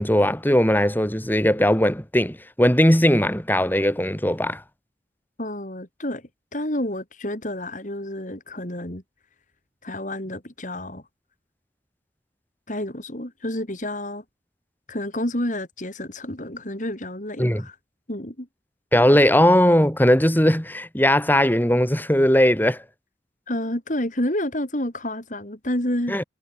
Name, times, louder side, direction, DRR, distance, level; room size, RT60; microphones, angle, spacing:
voice 1, 0.0-4.6 17.4-17.6 18.9-22.8 26.1-26.2, equal, 10° left, 5.3 m, -19 dB
voice 2, 5.4-9.0 9.8-11.0 12.7-14.2 14.9-17.8 18.1-18.5 23.5-26.1, left 1 dB, 45° left, 4.6 m, -29 dB
head